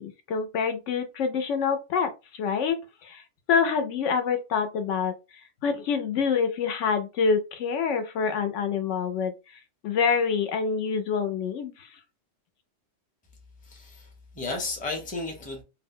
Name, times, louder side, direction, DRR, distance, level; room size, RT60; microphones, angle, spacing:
voice 1, 0.0-3.2 3.5-5.1 5.6-9.3 9.8-11.9, left 6 dB, 75° left, 0.9 m, -26 dB
voice 2, 13.6-14.1 14.3-15.6, left 3 dB, 10° left, 0.6 m, -33 dB
2.6 x 2.0 x 3.6 m
omnidirectional pair, 1.3 m